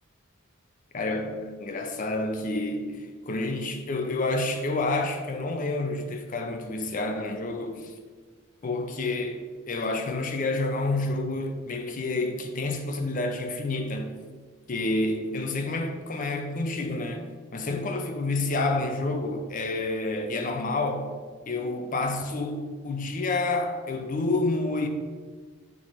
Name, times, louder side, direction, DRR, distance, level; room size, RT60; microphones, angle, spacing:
voice 1, 0.9-7.9 8.6-14.1 14.7-21.1 21.5-24.9, left 2 dB, 40° left, 0.5 m, -29 dB
6.1 x 3.0 x 5.2 m
head